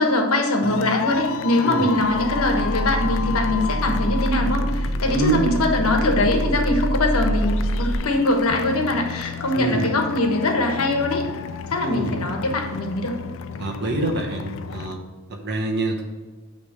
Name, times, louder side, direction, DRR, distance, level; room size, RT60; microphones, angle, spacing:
voice 1, 0.0-11.2 11.7-13.2, left 2 dB, 80° left, 2 dB, 1.2 m, -22 dB
sound 1, 0.6-14.9, left 6 dB, 65° left, 0.4 m, -33 dB
sound 2, 2.0-7.9, equal, 20° right, 1.9 m, -25 dB
voice 2, 5.1-5.5 9.6-9.9 11.8-12.1 13.6-15.0 15.3-16.0, right 2 dB, 55° right, 2 dB, 1.1 m, -25 dB
8.7 x 3.3 x 6.5 m, 1.4 s
head